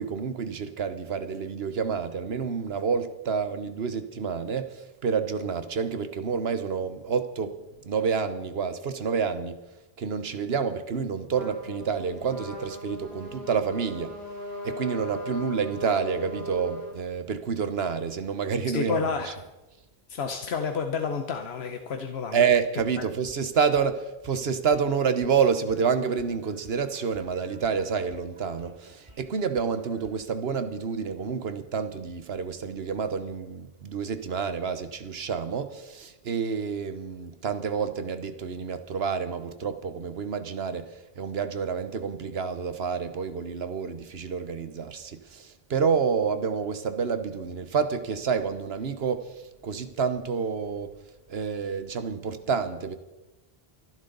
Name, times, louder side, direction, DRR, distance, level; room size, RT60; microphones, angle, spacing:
voice 1, 0.0-7.6 7.8-9.6 10.0-14.1 14.6-19.3 22.3-40.9 41.2-49.3 49.6-50.9 51.3-53.0, right 6 dB, 80° right, 10 dB, 1.2 m, -28 dB
Trumpet, 11.3-16.9, left 1 dB, 20° left, 4.9 m, -38 dB
voice 2, 18.7-19.4 20.1-22.4, left 5 dB, 90° left, 5 dB, 1.2 m, -30 dB
sound 1, 23.3-23.4 23.7-23.9 24.2-24.4 24.7-24.9 25.2-25.4 25.7-30.3, right 1 dB, 30° right, 2.4 m, -54 dB
24.0 x 11.0 x 4.0 m, 1.0 s
omnidirectional pair, 1.0 m